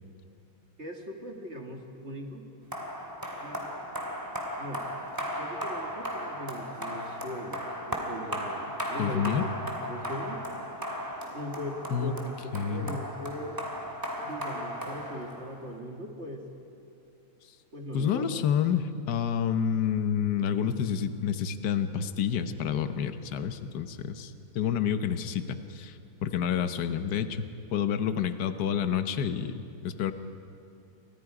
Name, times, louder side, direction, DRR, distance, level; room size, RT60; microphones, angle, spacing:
voice 1, 0.8-2.5 3.4-3.9 4.6-4.9 5.4-10.5 11.3-12.4 12.6-13.6 14.2-16.4 17.7-18.3, equal, 30° right, 2 dB, 2.1 m, -40 dB
sound 1, 2.7-15.7, equal, 10° right, 2.3 m, -36 dB
voice 2, 9.0-9.4 11.9-12.2 12.5-13.0 17.9-27.5 27.7-30.1, left 8 dB, 55° left, 9 dB, 1.4 m, -29 dB
29.5 x 24.5 x 4.9 m, 2.7 s
omnidirectional pair, 2.4 m